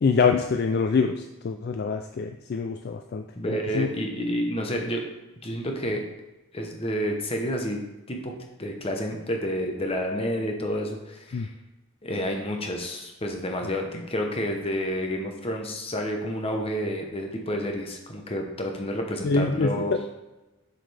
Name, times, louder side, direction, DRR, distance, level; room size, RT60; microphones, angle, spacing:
voice 1, 0.0-3.9 11.3-11.5 19.2-20.0, left 5 dB, 45° left, 6 dB, 0.3 m, -25 dB
voice 2, 3.3-5.1 5.4-6.0 6.5-7.8 8.1-8.3 8.6-11.5 12.0-20.0, equal, 25° left, 2 dB, 1.0 m, -29 dB
7.3 x 6.6 x 3.4 m, 1.1 s
head